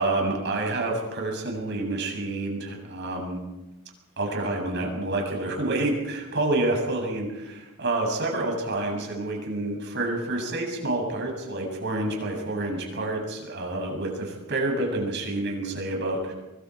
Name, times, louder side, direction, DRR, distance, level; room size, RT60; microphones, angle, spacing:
voice 1, 0.0-3.4 4.2-16.3, right 2 dB, 55° right, 1 dB, 7.7 m, -28 dB
25.0 x 25.0 x 4.9 m, 1.0 s
head